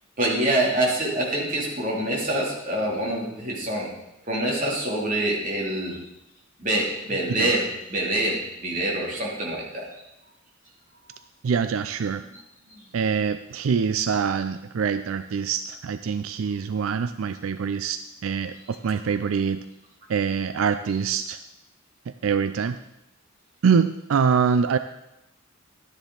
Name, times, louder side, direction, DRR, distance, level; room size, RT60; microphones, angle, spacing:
voice 1, 0.2-3.9 4.3-6.0 6.6-7.6 7.9-9.9 12.7-12.8, right 1 dB, 40° right, -3 dB, 3.0 m, -25 dB
voice 2, 11.4-12.2 12.9-19.7 20.1-21.4 22.1-22.8 23.6-24.8, right 6 dB, 85° right, 11 dB, 0.4 m, -24 dB
12.5 x 10.0 x 4.0 m, 0.87 s
head